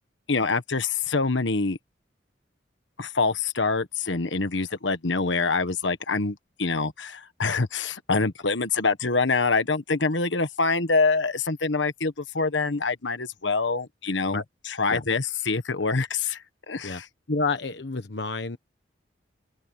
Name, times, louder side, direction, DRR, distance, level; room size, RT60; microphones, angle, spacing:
voice 1, 0.3-1.8 3.0-14.4 14.8-16.4 16.7-17.0, left 4 dB, 85° left, 1.4 m, -25 dB
voice 2, 17.3-18.6, left 3 dB, 70° left, 1.2 m, -29 dB
open air
head